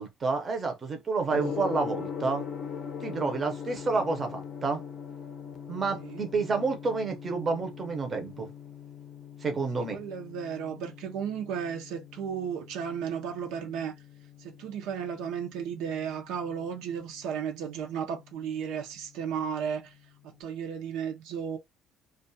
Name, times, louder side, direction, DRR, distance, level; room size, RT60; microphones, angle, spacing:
voice 1, 0.0-2.4 3.0-4.8 5.7-8.5 9.4-10.0, right 4 dB, 25° right, 0.6 m, -29 dB
Gong, 1.3-20.3, left 7 dB, 40° left, 0.5 m, -42 dB
voice 2, 9.8-13.9 14.4-19.9 20.2-21.6, right 7 dB, 85° right, 0.6 m, -34 dB
2.3 x 2.3 x 2.6 m
cardioid pair, 165°, 0 cm